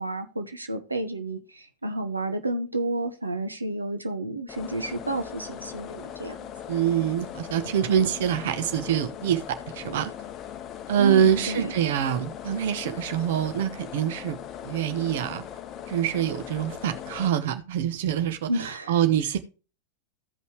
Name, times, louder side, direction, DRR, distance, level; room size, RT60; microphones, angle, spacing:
voice 1, 0.0-6.5 11.0-11.7 18.5-18.9, right 2 dB, 80° right, 1.0 m, -31 dB
sound 1, 4.5-17.3, left 9 dB, 30° left, 0.7 m, -39 dB
voice 2, 6.7-10.1 10.9-14.4 14.6-15.4 15.9-19.4, right 9 dB, 55° right, 1.0 m, -25 dB
15.5 x 5.5 x 3.2 m
figure-of-eight pair, 90°, 0 cm